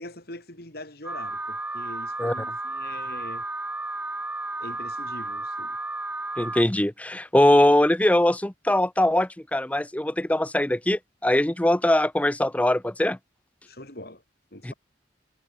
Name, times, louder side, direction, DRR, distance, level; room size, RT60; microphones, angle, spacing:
voice 1, 0.0-3.5 4.6-5.8 13.6-14.2 14.5-14.7, left 1 dB, 55° left, 6.4 m, -42 dB
Alarm, 1.0-6.6, right 2 dB, 10° right, 2.1 m, -33 dB
voice 2, 6.4-13.2 14.6-14.7, left 1 dB, 5° left, 0.5 m, -22 dB
head